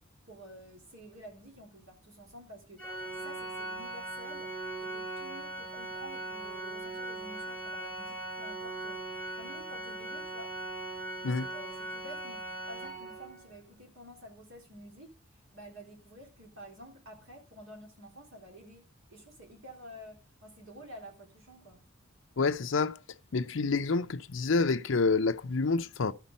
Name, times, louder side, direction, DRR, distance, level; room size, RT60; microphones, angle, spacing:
voice 1, 0.0-9.1 9.4-10.5 11.4-15.1 15.5-21.8, equal, 70° right, 3.7 m, -50 dB
Organ, 2.8-13.5, right 2 dB, 5° left, 1.6 m, -39 dB
voice 2, 22.4-23.0 23.3-26.1, left 4 dB, 65° left, 0.6 m, -28 dB
12.5 x 5.7 x 5.3 m
head